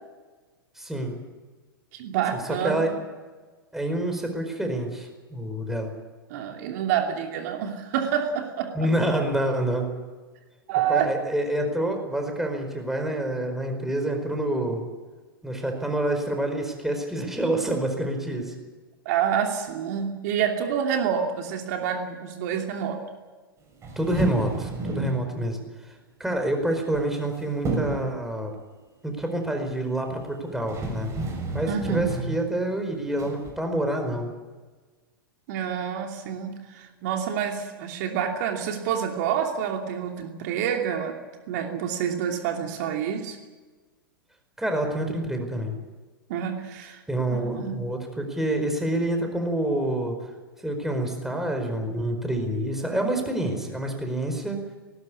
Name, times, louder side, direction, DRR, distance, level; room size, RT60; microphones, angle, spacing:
voice 1, 0.8-1.2 2.6-2.9 3.7-5.9 8.7-9.9 10.9-14.8 15.4-18.5 23.9-25.6 26.2-28.5 29.0-31.1 31.5-34.3 44.6-45.7 47.1-50.1 50.6-54.6, right 1 dB, 5° right, 4 dB, 4.8 m, -27 dB
voice 2, 1.9-2.8 6.3-8.7 10.7-11.1 19.0-23.0 31.7-32.1 35.5-41.2 41.5-43.4 46.3-47.0 47.3-47.8, right 8 dB, 50° right, 3 dB, 2.8 m, -28 dB
sound 1, 23.8-25.2 26.7-27.3 27.6-28.1 30.2-30.3 30.7-32.3 33.2-33.5, right 3 dB, 25° right, 6.9 m, -30 dB
19.5 x 19.5 x 8.6 m, 1.3 s
figure-of-eight pair, 105°, 12 cm